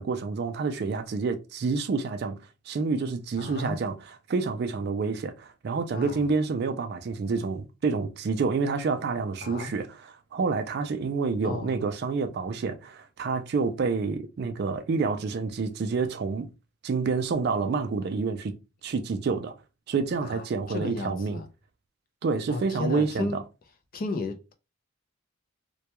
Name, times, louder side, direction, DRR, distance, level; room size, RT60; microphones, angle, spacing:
voice 1, 0.0-2.4 2.7-4.0 4.3-9.9 10.3-16.5 16.8-18.5 18.8-19.5 19.9-21.4 22.2-23.4, right 4 dB, 50° right, 0.3 m, -28 dB
voice 2, 3.4-3.8 5.9-6.2 9.4-9.7 11.4-11.8 20.2-21.5 22.5-23.4 23.9-24.5, left 3 dB, 40° left, 0.4 m, -34 dB
2.2 x 2.2 x 2.8 m
head